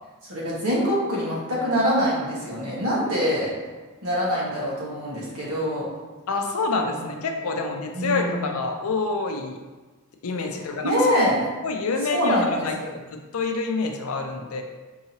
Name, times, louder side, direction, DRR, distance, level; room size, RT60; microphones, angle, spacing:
voice 1, 0.3-3.5 4.0-5.9 6.9-7.0 7.4-7.7 7.9-8.5 10.8-11.4 12.1-12.5, equal, 90° right, -6 dB, 1.4 m, -24 dB
voice 2, 6.3-9.6 10.2-10.9 11.6-12.8 13.3-14.6, left 3 dB, 80° left, 4 dB, 0.5 m, -27 dB
4.6 x 2.9 x 2.8 m, 1.3 s
head